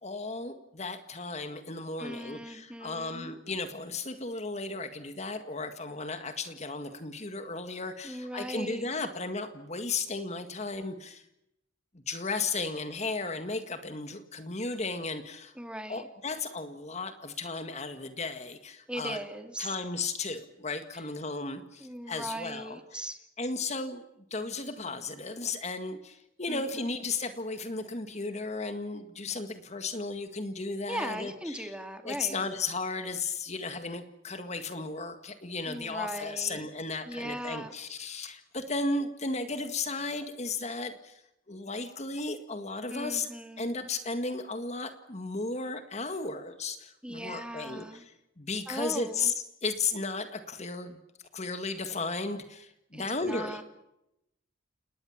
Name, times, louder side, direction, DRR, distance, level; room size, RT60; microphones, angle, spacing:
voice 1, 0.0-11.2 11.9-15.5 15.9-19.2 19.6-23.0 23.4-24.1 24.3-31.7 32.0-41.2 41.5-43.3 43.6-49.3 49.6-51.0 51.3-53.6, left 3 dB, 35° left, 9 dB, 1.9 m, -35 dB
voice 2, 2.0-3.4 8.0-8.9 15.6-16.1 18.9-19.8 20.9-21.0 21.8-23.2 26.5-27.0 30.9-32.5 35.7-36.7 37.1-37.7 42.9-43.9 47.0-48.0 48.7-49.3 52.9-53.6, right 1 dB, 5° right, 7 dB, 2.4 m, -39 dB
30.0 x 19.5 x 7.3 m, 0.84 s
head